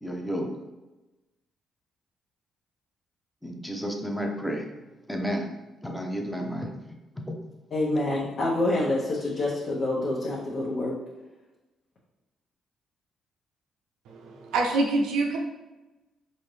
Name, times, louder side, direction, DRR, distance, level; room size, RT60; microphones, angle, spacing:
voice 1, 0.0-0.5 3.4-4.7 5.1-5.5 5.8-6.7, equal, 5° left, 2 dB, 0.7 m, -31 dB
voice 2, 7.7-10.9, left 2 dB, 50° left, -6 dB, 0.9 m, -27 dB
voice 3, 14.1-15.4, right 2 dB, 85° right, 1 dB, 0.5 m, -26 dB
4.1 x 2.6 x 3.3 m, 1.1 s
cardioid pair, 90°, 0 cm